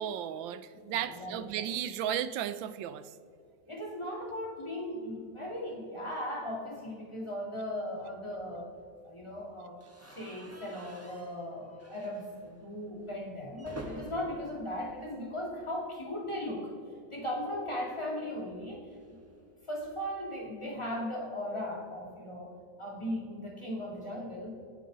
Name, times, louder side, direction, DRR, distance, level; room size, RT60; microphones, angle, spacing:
voice 1, 0.0-3.2, right 10 dB, 75° right, 13 dB, 1.3 m, -35 dB
voice 2, 0.9-1.4 3.7-8.7 9.0-16.7 17.1-19.2 19.7-24.5, left 1 dB, 15° left, -2 dB, 2.4 m, -38 dB
sound 1, 9.8-15.8 16.1-16.3 16.6-16.7 18.0-20.3, equal, 10° right, 1.1 m, -49 dB
25.0 x 9.3 x 4.0 m, 2.5 s
omnidirectional pair, 2.3 m